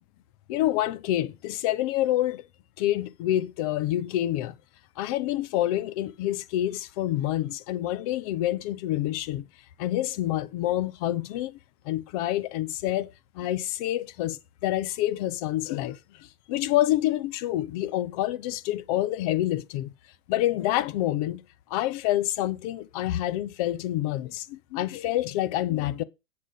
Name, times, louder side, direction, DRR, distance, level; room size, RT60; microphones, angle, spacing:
voice 1, 0.5-2.4 2.8-4.6 5.0-9.5 9.8-11.6 11.9-16.0 16.5-19.9 20.3-21.4 21.7-26.0, left 14 dB, 25° left, 0.6 m, -27 dB
8.5 x 7.7 x 3.9 m
hypercardioid pair, 140°, 42 cm